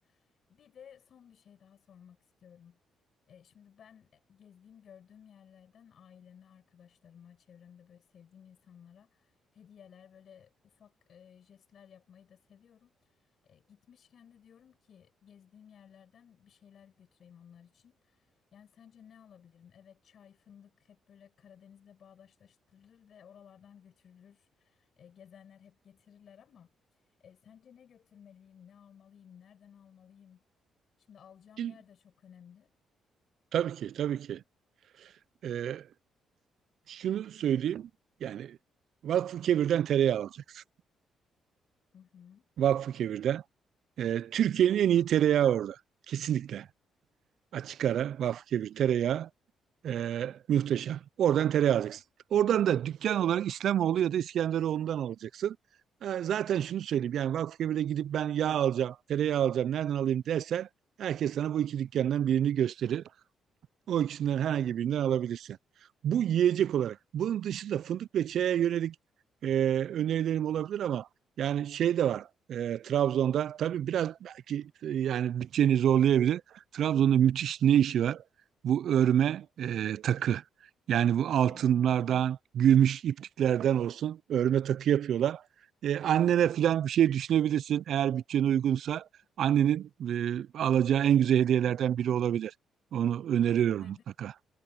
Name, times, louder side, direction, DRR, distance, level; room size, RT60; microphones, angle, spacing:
voice 1, 0.0-2.8 3.3-30.4 31.0-32.8 41.9-42.5 81.4-82.2 93.4-94.0, left 8 dB, 60° left, 7.0 m, -57 dB
voice 2, 33.5-34.4 35.0-35.1 35.4-35.9 36.9-37.9 38.2-38.6 39.0-40.6 42.6-43.4 44.0-45.8 46.1-46.7 47.5-49.3 49.8-52.0 52.3-55.6 56.0-60.7 61.0-63.0 63.9-65.6 66.0-69.0 69.4-71.1 71.4-76.4 76.7-78.2 78.6-80.4 80.9-85.4 85.8-89.1 89.4-92.5 92.9-94.3, right 10 dB, 70° right, 0.3 m, -27 dB
cardioid pair, 90°, 0 cm